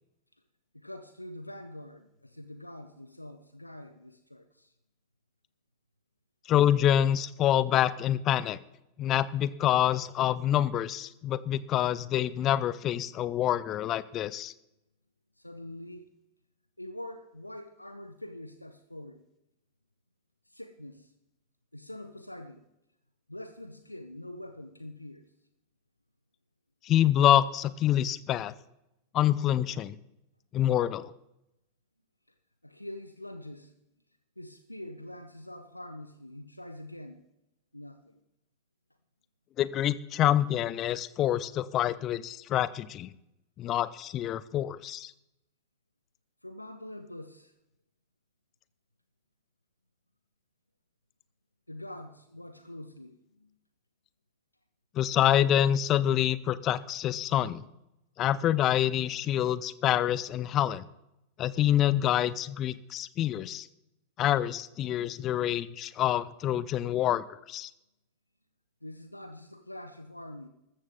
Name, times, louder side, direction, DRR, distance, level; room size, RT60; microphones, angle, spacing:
voice 1, 0.7-4.7 15.4-16.1 16.8-19.2 20.5-21.1 21.7-22.7 23.3-25.3 32.6-33.7 34.4-37.2 37.7-38.2 46.4-47.5 51.7-53.5 68.8-70.5, left 1 dB, 85° left, 0.8 m, -44 dB
voice 2, 6.5-8.6 9.0-14.5 26.8-28.5 29.1-30.0 30.5-31.1 39.6-43.1 43.6-45.1 54.9-57.6 58.2-60.8 61.4-63.7 64.2-67.7, left 11 dB, 35° left, 0.6 m, -26 dB
14.0 x 14.0 x 3.6 m
figure-of-eight pair, 90°, 0 cm